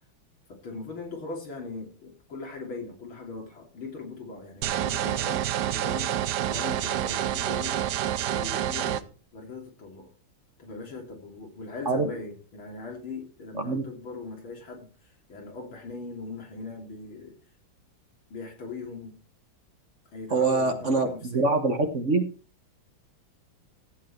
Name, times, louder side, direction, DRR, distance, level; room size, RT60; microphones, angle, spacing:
voice 1, 0.5-6.1 6.5-7.8 8.4-10.1 10.6-14.9 15.3-17.4 18.3-19.2 20.1-21.5, left 3 dB, 90° left, 3.8 m, -40 dB
sound 1, 4.6-9.0, right 11 dB, 65° right, 1.2 m, -28 dB
voice 2, 20.3-22.2, right 3 dB, 40° right, 1.5 m, -24 dB
14.5 x 8.5 x 4.4 m
omnidirectional pair, 2.2 m